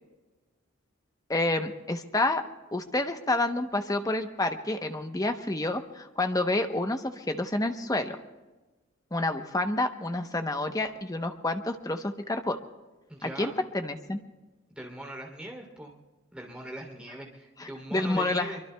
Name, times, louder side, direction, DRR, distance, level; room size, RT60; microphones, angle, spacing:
voice 1, 1.3-2.4 2.7-8.2 9.1-12.6 13.2-14.2 17.6-18.5, left 2 dB, 20° left, 6 dB, 0.8 m, -29 dB
voice 2, 13.1-13.6 14.7-16.0 16.3-18.6, right 1 dB, 5° right, 0 dB, 3.0 m, -41 dB
24.5 x 24.0 x 2.3 m, 1.2 s
head